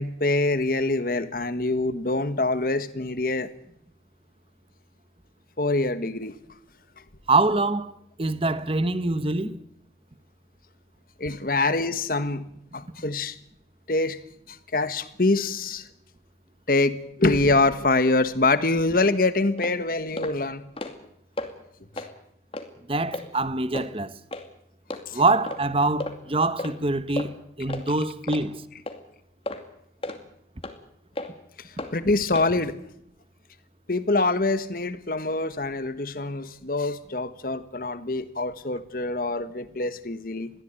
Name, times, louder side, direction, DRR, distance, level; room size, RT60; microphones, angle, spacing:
voice 1, 0.0-3.5 5.6-6.4 11.2-12.5 12.7-13.4 13.9-14.2 14.5-15.9 16.7-20.7 25.1-25.2 31.6-32.8 33.9-40.5, left 2 dB, 50° left, 1.4 m, -25 dB
voice 2, 7.3-7.9 8.2-9.6 22.9-24.2 25.1-28.6, right 2 dB, 30° right, 1.0 m, -24 dB
sound 1, 19.0-19.1 19.6-19.7 20.2-20.3 20.6-21.1 21.4-21.5 21.9-22.1 22.5-22.7 23.1-23.3 23.7-23.9 24.3-24.4 24.9-25.0 25.5-25.6 26.0-26.2 26.6-26.7 27.2-27.3 27.7-27.8 28.3-28.4 28.9-29.0 29.5-29.6 30.0-30.2 30.6-30.7 31.2-31.3 31.8-31.9 32.3-32.5, left 1 dB, 30° left, 2.3 m, -33 dB
22.0 x 16.0 x 9.0 m
head